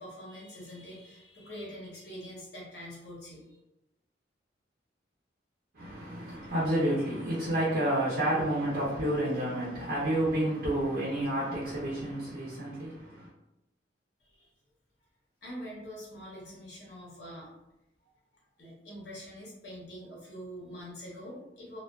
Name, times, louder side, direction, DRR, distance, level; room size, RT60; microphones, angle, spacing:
voice 1, 0.0-3.6 14.2-14.5 15.4-17.5 18.6-21.8, equal, 65° left, -5 dB, 0.9 m, -44 dB
voice 2, 5.7-13.3, right 1 dB, 60° right, -8 dB, 0.6 m, -30 dB
2.3 x 2.2 x 2.3 m, 0.89 s
head